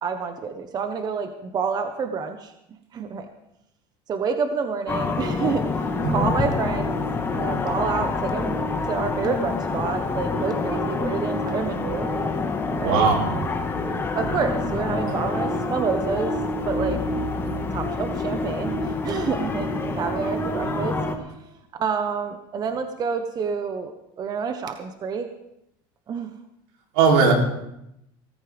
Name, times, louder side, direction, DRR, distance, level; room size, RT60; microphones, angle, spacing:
voice 1, 0.0-2.5 2.9-3.3 4.1-5.6 6.1-7.0 7.3-8.5 8.9-12.1 12.8-13.1 14.1-16.3 16.6-17.0 17.7-19.7 19.9-20.9 21.7-23.9 24.2-25.3 26.1-26.3, right 5 dB, 35° right, 7 dB, 1.1 m, -28 dB
sound 1, 4.9-21.2, left 3 dB, 20° left, 1.6 m, -27 dB
voice 2, 6.0-6.3 12.8-13.5 15.1-15.2 17.4-17.6 26.9-27.3, right 5 dB, 80° right, 1 dB, 3.4 m, -20 dB
18.5 x 14.0 x 3.5 m, 0.82 s
supercardioid pair, 120°, 12 cm